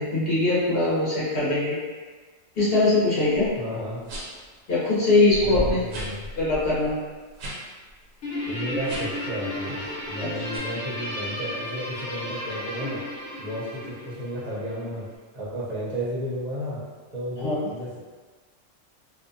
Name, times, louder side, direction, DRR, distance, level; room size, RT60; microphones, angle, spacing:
voice 1, 0.0-1.8 2.6-3.5 4.7-5.8 6.4-7.0 10.2-10.3 17.4-17.7, left 2 dB, 50° left, -9 dB, 1.1 m, -22 dB
sound 1, 3.3-3.5 4.0-4.5 5.0-5.1 5.3-7.6 7.9-8.1 8.8-9.3 9.7-10.0 10.5-10.6, equal, 75° right, 1.0 m, -34 dB
voice 2, 3.6-4.1 5.4-6.3 8.5-13.0 13.4-15.1 15.3-16.8 17.1-18.0, equal, 40° right, -8 dB, 0.6 m, -33 dB
Guitar, 8.2-14.9, left 1 dB, 75° left, 1.1 m, -34 dB
2.7 x 2.2 x 2.6 m, 1.4 s
omnidirectional pair, 1.4 m